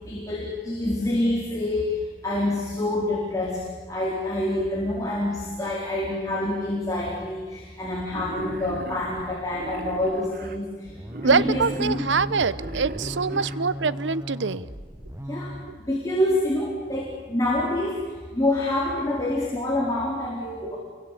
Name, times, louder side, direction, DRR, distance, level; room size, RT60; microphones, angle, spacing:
voice 1, 0.1-1.8 2.2-3.6 3.9-10.7 11.2-12.0 13.3-13.5 15.3-15.5 15.9-18.0 18.3-20.8, left 1 dB, 20° left, -4 dB, 4.3 m, -26 dB
Wild animals, 8.1-10.6 11.1-13.6, right 2 dB, 50° right, 1.5 m, -38 dB
sound 1, 10.9-15.7, equal, 15° right, 1.1 m, -36 dB
voice 2, 11.2-14.7, right 5 dB, 90° right, 18 dB, 0.8 m, -24 dB
28.5 x 23.5 x 8.4 m, 1.5 s
head